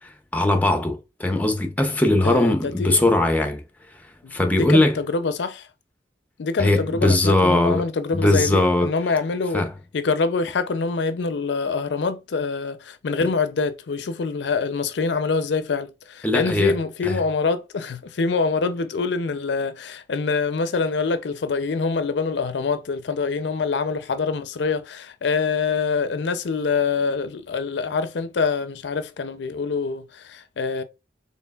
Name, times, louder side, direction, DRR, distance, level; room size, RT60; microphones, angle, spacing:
voice 1, 0.0-3.6 3.9-5.0 6.6-7.8 8.1-8.9 9.5-9.7 16.2-16.8 17.0-17.2, left 1 dB, 10° left, 0.5 m, -20 dB
voice 2, 2.2-3.1 4.2-5.7 6.4-9.6 9.9-30.8, left 4 dB, 75° left, 0.4 m, -25 dB
4.4 x 3.5 x 2.3 m
head